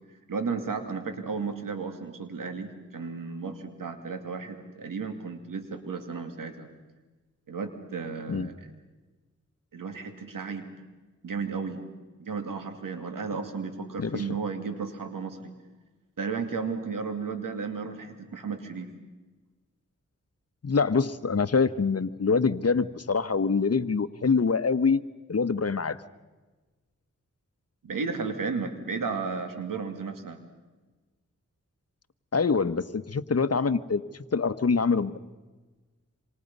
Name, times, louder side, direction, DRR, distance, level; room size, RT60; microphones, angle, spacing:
voice 1, 0.3-6.7 7.5-8.5 9.7-10.7 11.2-11.8 12.2-15.5 16.2-18.9 27.8-30.4, right 5 dB, 85° right, 7 dB, 2.6 m, -34 dB
voice 2, 20.6-25.0 25.3-26.0 32.3-34.0 34.3-35.1, left 5 dB, 50° left, 13 dB, 1.2 m, -25 dB
27.0 x 26.5 x 5.5 m, 1.2 s
cardioid pair, 45°, 32 cm